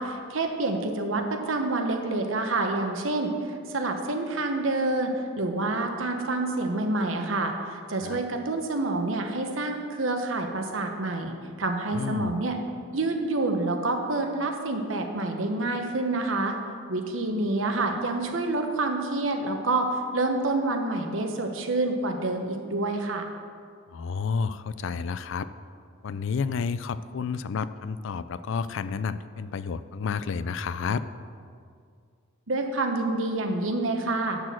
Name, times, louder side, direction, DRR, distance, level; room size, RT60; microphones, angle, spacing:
voice 1, 0.0-5.1 5.4-11.3 11.6-12.6 12.9-16.5 16.9-23.3 32.5-34.4, right 2 dB, 70° right, 4 dB, 1.1 m, -27 dB
voice 2, 11.9-12.3 23.9-25.5 26.0-31.0, left 5 dB, 70° left, 14 dB, 0.4 m, -30 dB
11.0 x 4.3 x 7.5 m, 2.2 s
head